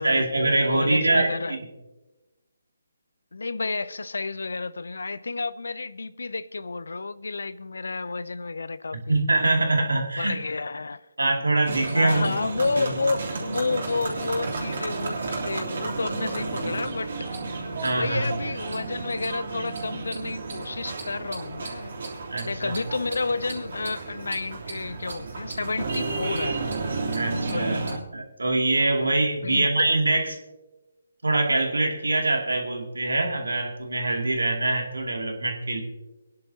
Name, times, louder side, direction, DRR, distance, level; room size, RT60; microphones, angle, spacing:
voice 1, 0.0-1.6 9.1-10.4 11.2-12.2 12.8-13.0 17.8-18.2 22.3-22.7 27.1-27.8 28.1-30.4 31.2-35.8, right 2 dB, 85° right, 2.6 m, -24 dB
voice 2, 0.7-1.6 3.3-9.2 10.2-11.0 11.9-17.3 18.0-21.9 22.5-26.6 27.3-28.0 29.0-29.7, left 3 dB, 75° left, 0.6 m, -30 dB
sound 1, 11.6-28.0, right 3 dB, 60° right, 3.3 m, -32 dB
23.5 x 10.5 x 2.8 m
figure-of-eight pair, 150°, 0 cm